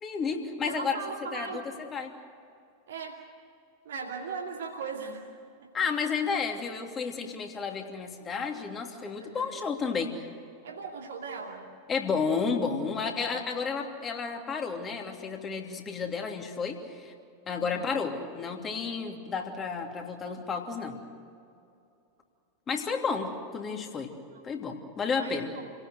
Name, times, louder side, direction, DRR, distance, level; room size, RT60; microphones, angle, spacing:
voice 1, 0.0-0.9 1.3-1.6 1.9-2.1 5.7-10.3 11.9-17.1 17.5-21.0 22.7-24.1 24.4-25.5, left 5 dB, 25° left, 3 dB, 3.0 m, -32 dB
voice 2, 0.6-1.8 2.9-3.2 3.8-5.2 5.6-5.9 9.2-9.6 10.6-11.7 17.6-17.9 24.3-24.4 25.2-25.7, right 5 dB, 60° right, 0 dB, 2.4 m, -39 dB
29.0 x 17.5 x 8.1 m, 2.5 s
figure-of-eight pair, 90°, 0 cm